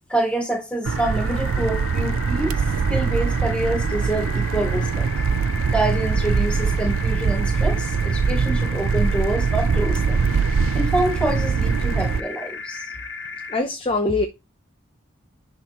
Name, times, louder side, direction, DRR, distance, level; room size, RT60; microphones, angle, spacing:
voice 1, 0.1-2.6 2.9-5.1 5.7-10.2 10.7-12.9, right 1 dB, 5° left, 3.9 m, -26 dB
sound 1, 0.8-13.6, left 4 dB, 55° left, 1.6 m, -35 dB
sound 2, 0.9-12.2, right 5 dB, 80° right, 0.4 m, -22 dB
voice 2, 13.5-14.2, left 2 dB, 25° left, 0.7 m, -22 dB
11.5 x 4.3 x 3.1 m
head